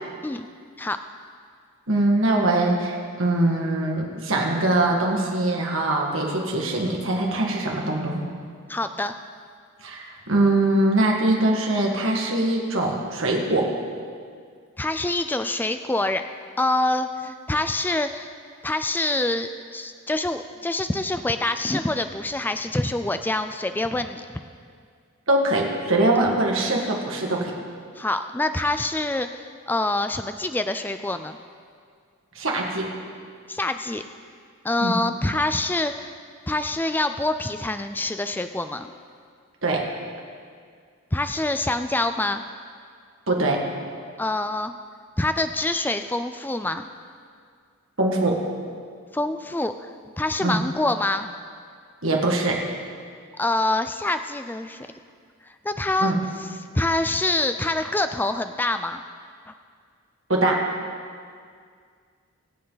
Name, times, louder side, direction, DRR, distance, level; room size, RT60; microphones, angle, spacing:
voice 1, 1.9-8.2 9.8-13.7 25.3-27.5 32.4-32.9 34.8-35.0 39.6-39.9 43.3-43.6 48.0-48.4 50.4-50.6 52.0-52.6 56.0-56.2 60.3-60.6, right 2 dB, 60° right, 0 dB, 1.9 m, -22 dB
voice 2, 8.7-9.2 14.8-16.2 16.6-18.3 18.6-24.2 28.0-31.4 33.5-34.0 34.6-36.1 36.5-38.9 41.1-42.4 44.2-44.7 45.2-46.8 49.1-49.9 50.2-51.3 53.3-54.9 55.4-56.5 56.7-59.0 59.5-59.6, left 2 dB, 10° left, 9 dB, 0.3 m, -26 dB
23.0 x 7.8 x 4.0 m, 2.1 s
head